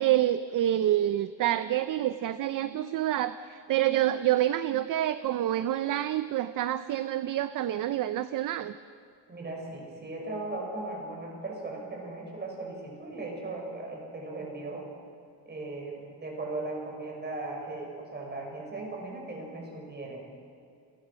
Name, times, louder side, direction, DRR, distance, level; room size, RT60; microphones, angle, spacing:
voice 1, 0.0-8.7, right 12 dB, 45° right, 12 dB, 0.7 m, -27 dB
voice 2, 9.3-14.9 15.4-20.2, right 2 dB, 25° right, 0 dB, 6.8 m, -38 dB
29.5 x 19.0 x 6.4 m, 2.3 s
cardioid pair, 135°, 44 cm